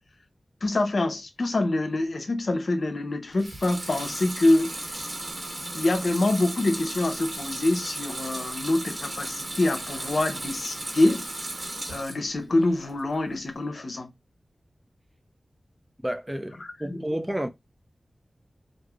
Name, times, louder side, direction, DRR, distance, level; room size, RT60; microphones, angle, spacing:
voice 1, 0.6-4.7 5.7-11.3 11.9-14.1 16.6-17.0, left 2 dB, 65° left, 0.6 m, -25 dB
Water tap faucet / Sink (filling or washing) / Liquid, 3.3-12.3 12.7-13.4, right 1 dB, 50° right, 1.8 m, -35 dB
voice 2, 16.0-17.5, right 1 dB, 10° right, 0.4 m, -30 dB
3.1 x 2.6 x 2.3 m
wide cardioid pair, 70°, 0 cm